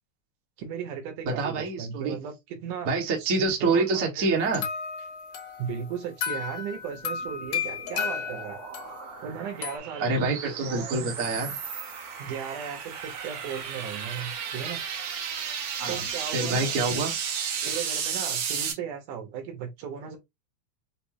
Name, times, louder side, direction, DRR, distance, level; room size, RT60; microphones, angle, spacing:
voice 1, 0.6-2.9 3.2-3.3 3.6-4.5 5.6-8.6 9.2-10.3 10.7-11.0 12.2-14.8 15.9-16.8 17.6-20.2, right 7 dB, 85° right, 2.7 m, -36 dB
voice 2, 1.3-2.2 2.8-4.7 10.0-11.6 15.8-16.0 16.3-17.2, right 3 dB, 45° right, 1.0 m, -26 dB
sound 1, 4.5-9.8, left 7 dB, 75° left, 2.4 m, -34 dB
sound 2, 7.0-18.7, right 7 dB, 65° right, 1.7 m, -34 dB
6.0 x 2.1 x 2.9 m
omnidirectional pair, 3.5 m